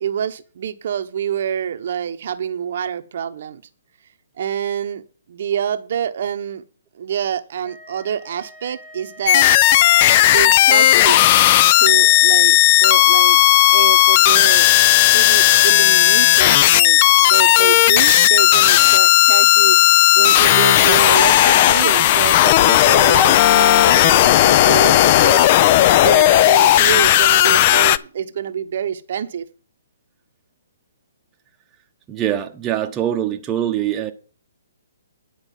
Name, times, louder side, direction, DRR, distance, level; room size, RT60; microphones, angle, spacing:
voice 1, 0.0-3.6 4.4-6.6 6.9-9.5 10.2-11.2 11.6-13.4 13.7-14.7 15.0-19.8 20.1-25.5 25.9-29.4, right 9 dB, 55° right, 0.8 m, -26 dB
Wind instrument woodwind instrument, 7.6-12.5, equal, 5° left, 1.4 m, -44 dB
sound 1, 9.3-28.0, left 14 dB, 40° left, 0.4 m, -13 dB
voice 2, 32.1-34.1, right 11 dB, 20° right, 0.8 m, -23 dB
10.0 x 4.8 x 7.4 m
hypercardioid pair, 145°, 0 cm